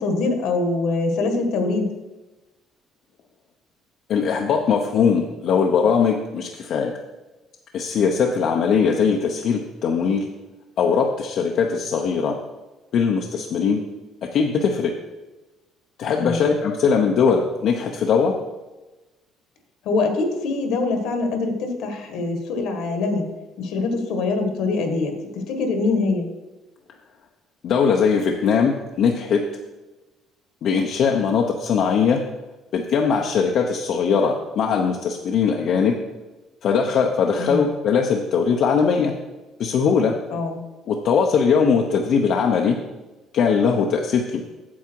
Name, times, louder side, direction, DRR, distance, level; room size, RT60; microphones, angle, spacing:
voice 1, 0.0-1.9 16.2-16.5 19.8-23.3 23.6-26.3 37.4-37.6 40.3-40.6, left 3 dB, 75° left, 6 dB, 1.6 m, -24 dB
voice 2, 4.1-6.9 7.7-10.3 10.8-12.3 12.9-13.8 14.3-14.9 16.0-18.3 27.6-29.4 30.6-32.2 32.7-35.9 36.6-39.1 39.6-40.1 40.9-42.8 43.3-44.4, left 6 dB, 55° left, 2 dB, 0.8 m, -20 dB
8.5 x 7.2 x 4.6 m, 1.1 s
cardioid pair, 130°, 0 cm